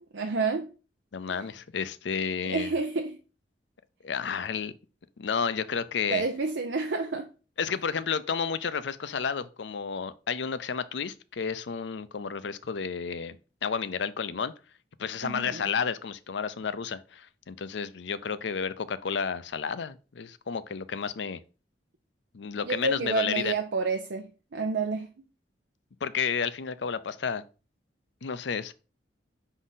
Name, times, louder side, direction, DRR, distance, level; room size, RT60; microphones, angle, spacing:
voice 1, 0.1-0.7 1.3-1.4 2.4-3.2 6.1-7.3 15.2-15.7 22.6-25.1, right 4 dB, 80° right, 0.6 m, -29 dB
voice 2, 1.1-2.7 4.0-4.7 5.2-6.2 7.6-13.4 13.6-14.5 15.0-21.4 22.3-23.5 26.0-27.4 28.2-28.7, left 6 dB, 75° left, 0.5 m, -31 dB
6.2 x 4.0 x 4.0 m
head